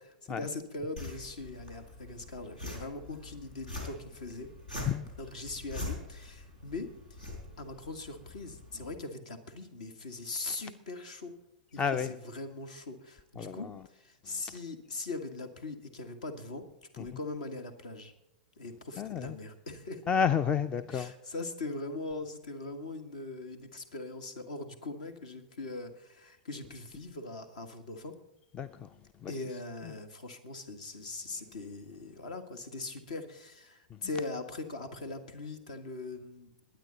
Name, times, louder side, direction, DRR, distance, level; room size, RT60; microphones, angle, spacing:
voice 1, 0.0-4.5 5.2-7.2 7.6-11.3 11.7-16.6 16.9-18.1 18.6-20.0 20.9-28.1 29.3-36.5, left 2 dB, 65° left, 1.8 m, -41 dB
sound 1, 1.0-9.0, left 2 dB, 80° left, 4.0 m, -44 dB
voice 2, 11.8-12.1 13.4-13.8 14.3-14.6 17.0-17.1 19.0-19.4 20.1-21.1 28.5-29.4 29.8-29.9 33.9-34.0, left 7 dB, 25° left, 0.5 m, -31 dB
21.0 x 9.4 x 4.0 m
figure-of-eight pair, 95°, 4 cm